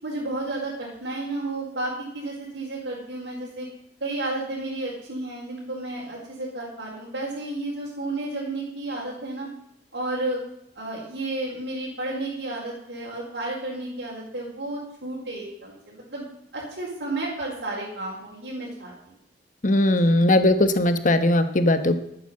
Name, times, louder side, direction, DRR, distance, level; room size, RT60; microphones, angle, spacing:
voice 1, 0.0-3.7 4.0-9.5 9.9-10.4 10.7-16.3 16.5-18.9 20.0-20.2, right 2 dB, 75° right, -7 dB, 4.7 m, -32 dB
voice 2, 19.6-22.0, left 1 dB, 45° left, 10 dB, 1.2 m, -19 dB
12.0 x 9.5 x 7.7 m, 0.78 s
head